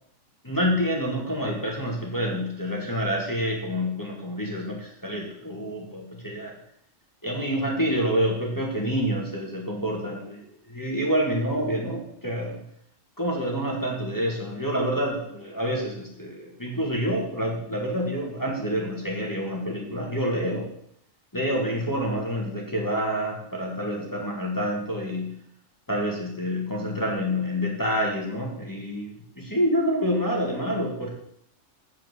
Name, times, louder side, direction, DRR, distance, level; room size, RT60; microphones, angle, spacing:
voice 1, 0.4-6.6 7.2-12.6 13.2-20.7 21.3-25.4 25.9-31.1, equal, 15° left, -2 dB, 1.9 m, -27 dB
7.3 x 6.9 x 7.0 m, 0.72 s
omnidirectional pair, 1.4 m